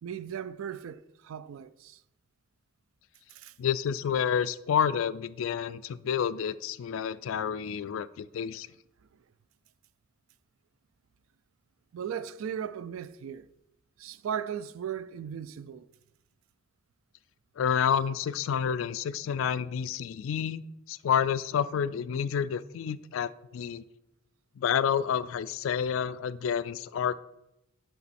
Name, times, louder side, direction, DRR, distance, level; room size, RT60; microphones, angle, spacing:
voice 1, 0.0-2.0 3.3-3.5 11.9-13.5 14.0-15.9, right 8 dB, 80° right, 0.3 m, -37 dB
voice 2, 3.6-8.7 17.6-23.8 24.6-27.1, left 8 dB, 70° left, 0.3 m, -29 dB
6.9 x 5.4 x 4.2 m
head